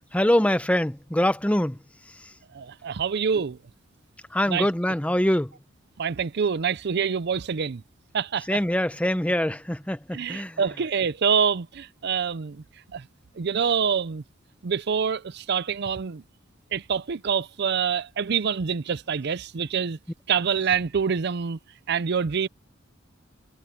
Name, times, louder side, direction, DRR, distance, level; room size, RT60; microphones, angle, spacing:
voice 1, 0.1-1.8 4.3-5.5 8.5-10.6, left 1 dB, 5° left, 0.8 m, -24 dB
voice 2, 2.5-3.6 4.5-4.7 6.0-7.8 8.1-8.5 10.1-12.6 12.9-13.0 13.4-14.2 14.6-16.2 16.7-20.0 20.3-21.6 21.9-22.5, right 6 dB, 55° right, 0.5 m, -26 dB
head